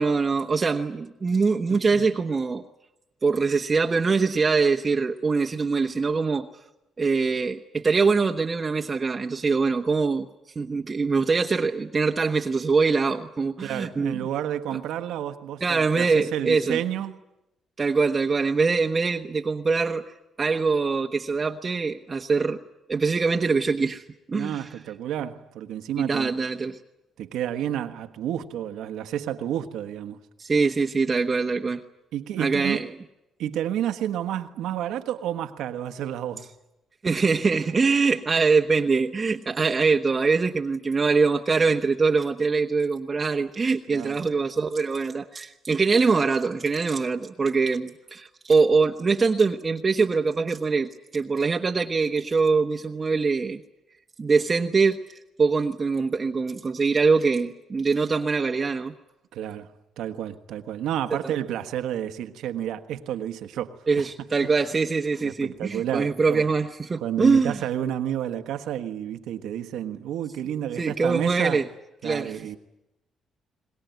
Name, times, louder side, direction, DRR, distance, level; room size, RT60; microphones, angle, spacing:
voice 1, 0.0-2.6 3.2-6.5 7.0-10.3 10.5-14.2 15.6-16.8 17.8-20.0 20.4-22.6 22.9-24.7 26.0-26.8 30.4-31.8 32.4-32.9 37.0-53.6 54.2-58.9 63.9-67.6 70.8-71.6 72.0-72.4, right 4 dB, 30° right, 1.1 m, -23 dB
voice 2, 1.7-2.0 13.6-17.2 24.3-26.3 27.2-30.2 32.1-32.8 33.4-36.5 43.9-44.2 59.3-59.7 60.0-63.8 64.4-64.5 65.2-66.5 67.0-71.6 72.0-72.6, right 10 dB, 85° right, 1.3 m, -30 dB
23.0 x 20.5 x 9.3 m
cardioid pair, 90°, 0 cm